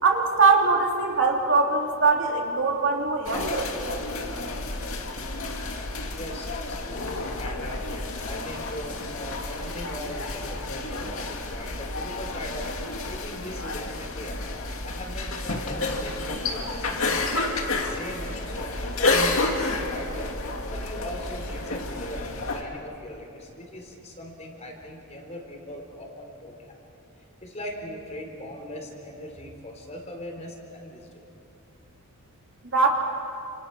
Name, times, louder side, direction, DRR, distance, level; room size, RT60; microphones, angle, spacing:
voice 1, 0.0-3.7 32.7-32.9, right 4 dB, 55° right, 1 dB, 2.9 m, -22 dB
sound 1, 3.3-22.6, left 2 dB, 65° left, 2.4 m, -30 dB
voice 2, 6.2-7.9 8.3-12.7 13.1-17.4 17.8-20.4 20.7-26.8 27.2-31.3, left 1 dB, 30° left, 1 dB, 4.0 m, -40 dB
29.5 x 27.0 x 6.1 m, 2.8 s
head